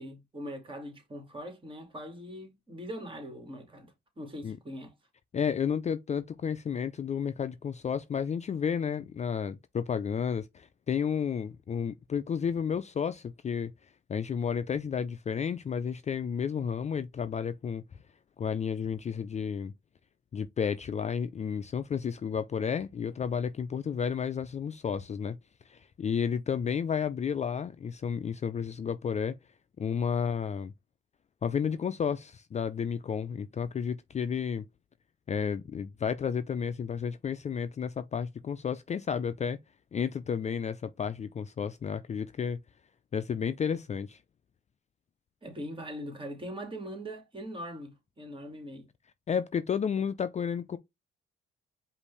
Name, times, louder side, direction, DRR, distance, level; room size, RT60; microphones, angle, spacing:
voice 1, 0.0-4.9 45.4-48.9, equal, 25° right, 2.2 m, -41 dB
voice 2, 5.3-13.7 14.1-17.8 18.4-19.7 20.3-25.4 25.7-29.4 29.8-30.7 31.4-34.6 35.3-39.6 39.9-42.6 43.1-44.2 49.3-50.8, left 7 dB, 35° left, 0.4 m, -32 dB
5.1 x 2.6 x 3.3 m
cardioid pair, 90°, 20 cm